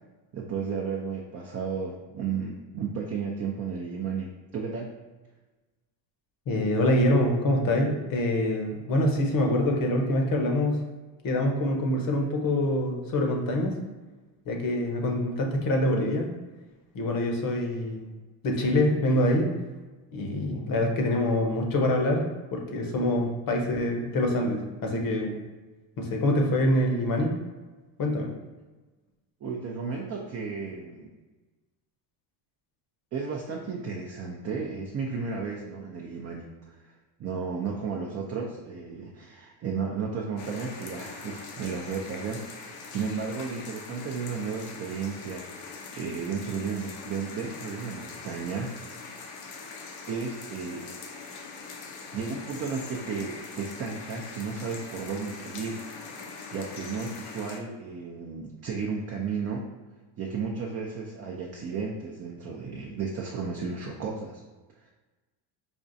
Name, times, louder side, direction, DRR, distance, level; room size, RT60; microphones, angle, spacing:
voice 1, 0.3-4.9 29.4-31.1 33.1-36.7 37.2-48.8 50.1-50.9 52.1-56.1 56.5-59.7 60.2-64.4, right 5 dB, 30° right, -1 dB, 0.4 m, -33 dB
voice 2, 6.5-10.8 11.2-13.8 14.5-16.3 16.9-18.1 18.4-19.5 20.1-25.4 26.0-27.3 28.0-28.3, left 1 dB, 40° left, 2 dB, 0.8 m, -25 dB
sound 1, 40.4-57.6, left 4 dB, 75° left, 0.8 m, -42 dB
5.1 x 2.3 x 2.6 m, 1.2 s
supercardioid pair, 105°, 50 cm